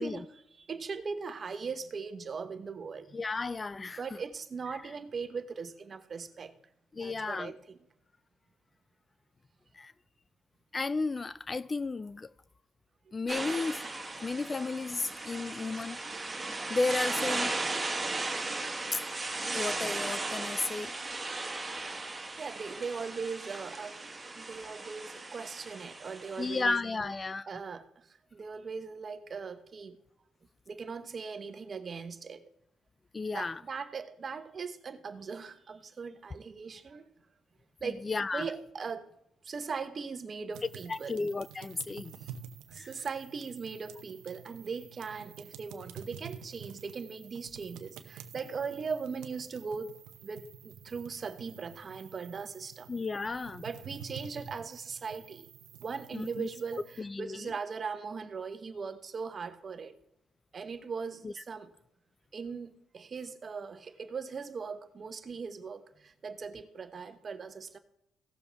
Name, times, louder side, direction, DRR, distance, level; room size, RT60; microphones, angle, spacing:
voice 1, 0.0-3.2 4.0-6.5 7.0-7.8 22.4-24.0 24.4-30.0 30.7-32.4 33.3-37.1 37.8-38.1 38.3-39.1 39.4-41.2 42.7-50.0 50.2-52.9 53.6-55.5 55.8-59.9 60.5-61.7 62.3-67.8, right 5 dB, 45° right, 1.0 m, -39 dB
voice 2, 3.1-4.0 6.9-7.5 9.7-9.9 10.7-12.3 13.1-16.1 16.7-17.5 18.9-19.0 19.5-20.9 26.4-27.5 33.1-33.6 37.8-38.5 40.9-42.1 42.8-42.9 52.9-53.6 56.1-56.5 57.0-57.5 61.2-61.3, left 3 dB, 30° left, 0.3 m, -33 dB
sound 1, 13.3-26.6, right 2 dB, 20° right, 1.9 m, -36 dB
sound 2, 40.5-57.0, right 8 dB, 90° right, 0.8 m, -49 dB
17.0 x 7.0 x 3.5 m
cardioid pair, 90°, 0 cm